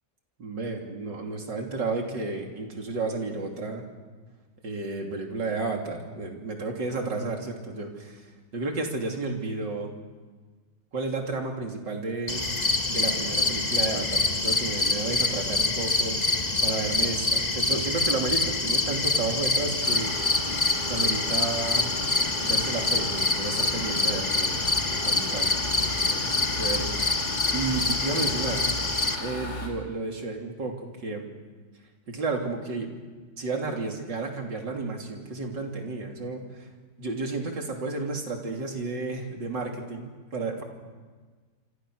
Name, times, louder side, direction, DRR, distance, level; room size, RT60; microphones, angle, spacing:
voice 1, 0.4-3.8 4.6-9.9 10.9-12.4 12.9-16.2 16.6-20.1 20.9-21.9 22.4-25.6 26.0-28.6 29.1-31.3 32.1-32.9 33.4-36.7 37.0-40.6, right 3 dB, 85° right, 2 dB, 3.8 m, -32 dB
sound 1, 12.3-29.2, left 2 dB, 25° left, 1.6 m, -26 dB
sound 2, 19.8-29.7, left 3 dB, 65° left, 4.2 m, -36 dB
27.5 x 26.0 x 6.4 m, 1.4 s
omnidirectional pair, 1.9 m